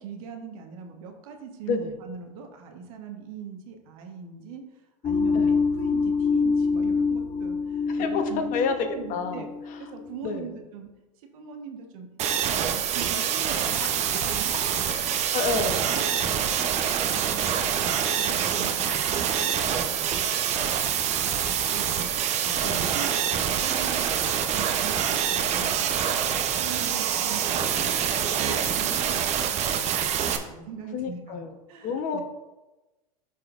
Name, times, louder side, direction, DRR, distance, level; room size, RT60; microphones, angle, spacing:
voice 1, 0.0-4.6 5.0-9.5 9.8-10.9 11.2-15.0 15.6-20.1 21.2-27.9 28.3-31.4 31.7-32.2, right 6 dB, 70° right, 4 dB, 1.3 m, -41 dB
sound 1, 5.0-10.1, left 4 dB, 25° left, 0.6 m, -25 dB
voice 2, 7.9-8.2 8.5-9.4 10.2-10.5 13.8-14.2 14.9-15.8 22.6-22.9 28.5-28.6 30.9-31.5 31.8-32.2, left 5 dB, 45° left, 6 dB, 1.0 m, -29 dB
sound 2, 12.2-30.4, right 8 dB, 35° right, 0.8 m, -26 dB
12.5 x 4.2 x 2.5 m, 1.1 s
hypercardioid pair, 110°, 19 cm